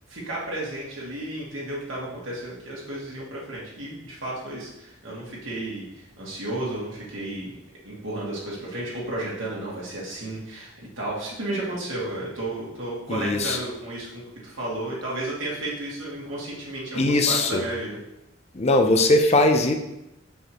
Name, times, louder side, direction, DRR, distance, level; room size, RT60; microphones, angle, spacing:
voice 1, 0.1-7.6 7.8-18.0, right 1 dB, 80° right, -6 dB, 2.2 m, -33 dB
voice 2, 13.1-13.6 17.0-17.6 18.5-19.7, left 2 dB, 35° left, 5 dB, 0.6 m, -20 dB
6.5 x 5.5 x 3.0 m, 0.91 s
head